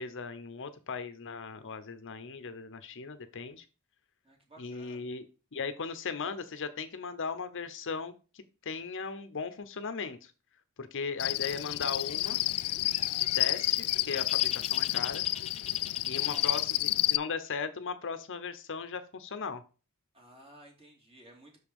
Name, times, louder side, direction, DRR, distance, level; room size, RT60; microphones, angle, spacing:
voice 1, 0.0-3.6 4.6-5.2 5.5-10.3 10.8-12.4 13.2-15.2 16.1-19.6, left 5 dB, 60° left, 11 dB, 0.8 m, -38 dB
voice 2, 4.2-5.0 16.0-16.6 20.1-21.6, right 1 dB, 25° right, 1 dB, 2.6 m, -55 dB
Cricket, 11.2-17.2, left 16 dB, 80° left, 0.4 m, -30 dB
Bird, 12.1-17.1, left 7 dB, 30° left, 0.6 m, -47 dB
6.5 x 5.0 x 5.3 m, 0.32 s
head